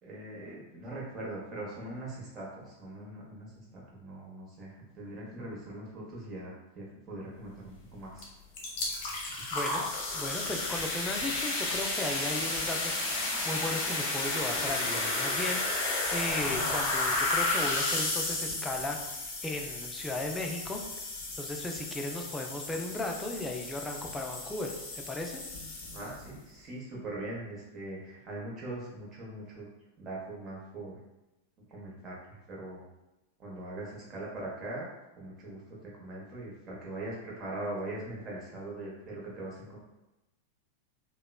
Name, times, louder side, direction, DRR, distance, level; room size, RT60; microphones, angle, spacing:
voice 1, 0.0-8.3 25.9-29.7 30.0-31.0 31.7-32.1 32.5-32.8 33.4-34.9 35.2-35.6 36.0-39.8, right 2 dB, 25° right, -5 dB, 0.9 m, -41 dB
sound 1, 8.2-8.3 8.5-26.3, left 2 dB, 45° left, 0.7 m, -33 dB
voice 2, 9.5-9.8 10.1-15.8 16.1-20.8 21.4-25.4, left 2 dB, 10° left, 2 dB, 0.3 m, -36 dB
2.9 x 2.1 x 2.3 m, 0.97 s
figure-of-eight pair, 90°, 0 cm